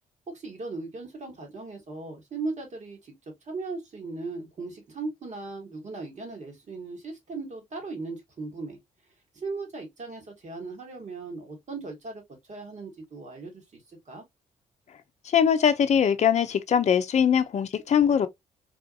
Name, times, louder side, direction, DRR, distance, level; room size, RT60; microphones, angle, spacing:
voice 1, 0.3-3.1 3.5-8.8 9.3-12.2 12.5-14.2, right 3 dB, 50° right, 1.8 m, -37 dB
voice 2, 15.3-18.3, left 8 dB, 50° left, 0.5 m, -22 dB
3.5 x 2.5 x 2.4 m
supercardioid pair, 55°, 16 cm